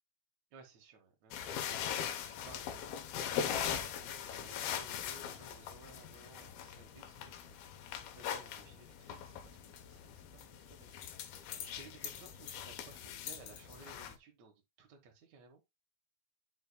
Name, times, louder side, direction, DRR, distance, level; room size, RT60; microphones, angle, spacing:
voice 1, 0.5-3.0 3.3-15.6, right 4 dB, 65° right, 1.8 m, -58 dB
sound 1, 1.3-14.1, left 8 dB, 70° left, 2.4 m, -41 dB
9.8 x 5.6 x 2.2 m
omnidirectional pair, 5.0 m